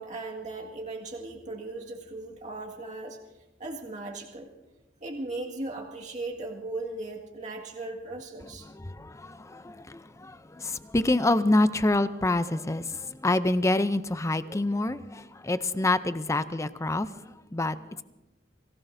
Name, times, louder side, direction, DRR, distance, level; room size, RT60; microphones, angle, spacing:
voice 1, 0.0-3.2 3.6-4.5 5.0-8.7, right 2 dB, 40° right, -1 dB, 1.9 m, -37 dB
voice 2, 8.6-18.0, left 2 dB, 15° left, 13 dB, 0.5 m, -27 dB
28.0 x 18.0 x 2.7 m, 1.0 s
head